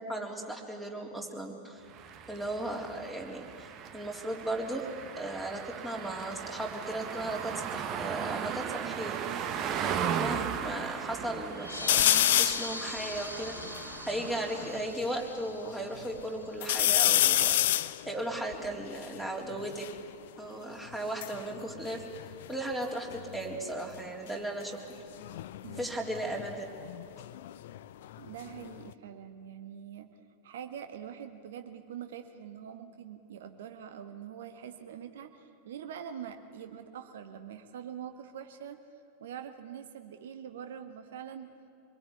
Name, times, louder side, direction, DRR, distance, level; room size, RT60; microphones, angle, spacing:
voice 1, 0.0-1.9 2.3-4.9 5.2-9.2 10.2-19.8 20.4-22.0 22.5-24.8 25.8-26.6, right 1 dB, 5° right, 0 dB, 3.8 m, -36 dB
sound 1, 1.9-14.9, right 8 dB, 35° right, 1.5 m, -37 dB
sound 2, 11.6-16.7, left 2 dB, 80° left, 2.0 m, -40 dB
sound 3, 11.9-12.7 13.3-13.4 13.5-15.1 15.6-16.2 16.6-20.0 20.9-22.8 23.1-23.6 25.1-27.8 28.1-28.9, left 13 dB, 55° left, 0.6 m, -29 dB
voice 2, 28.2-30.1 30.4-38.8 39.2-41.5, right 8 dB, 60° right, 7 dB, 1.7 m, -44 dB
25.5 x 21.0 x 9.6 m, 2.5 s
figure-of-eight pair, 90°, 0 cm